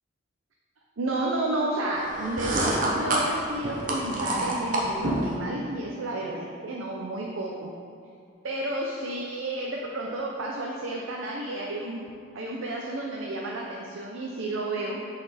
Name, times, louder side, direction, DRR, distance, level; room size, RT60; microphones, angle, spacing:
voice 1, 1.0-7.7 8.4-12.1 12.3-15.0, right 2 dB, 75° right, -2 dB, 0.6 m, -31 dB
sound 1, 2.1-5.3, right 1 dB, 40° right, 0.8 m, -27 dB
7.7 x 4.2 x 4.2 m, 2.3 s
head